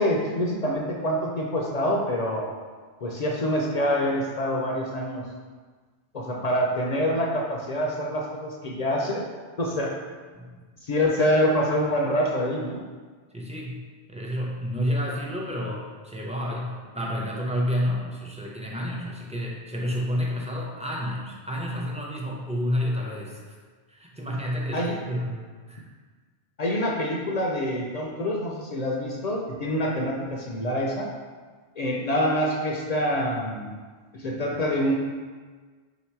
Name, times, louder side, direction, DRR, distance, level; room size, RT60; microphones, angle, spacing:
voice 1, 0.0-2.5 3.0-5.2 6.1-9.2 9.6-9.9 10.8-12.8 24.7-25.0 26.6-31.1 31.8-33.7 34.1-35.0, equal, 50° left, -2 dB, 0.5 m, -26 dB
voice 2, 13.3-13.8 14.1-23.6 23.9-25.8, equal, 10° right, -4 dB, 0.3 m, -30 dB
3.9 x 2.8 x 4.4 m, 1.4 s
omnidirectional pair, 1.1 m